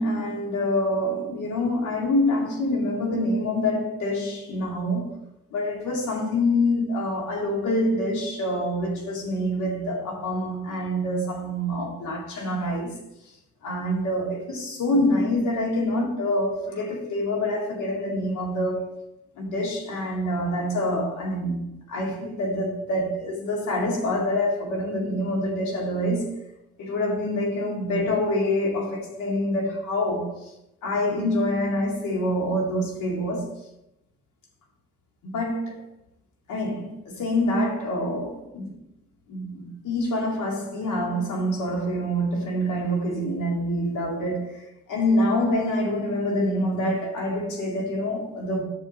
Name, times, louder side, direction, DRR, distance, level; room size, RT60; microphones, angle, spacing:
voice 1, 0.0-5.1 5.5-13.0 13.6-18.8 19.4-21.6 21.9-26.4 26.8-30.5 30.8-33.5 35.2-35.8 36.5-38.7 39.3-48.6, left 1 dB, 85° left, 2.4 m, -26 dB
6.5 x 4.8 x 5.8 m
cardioid pair, 90°, 30 cm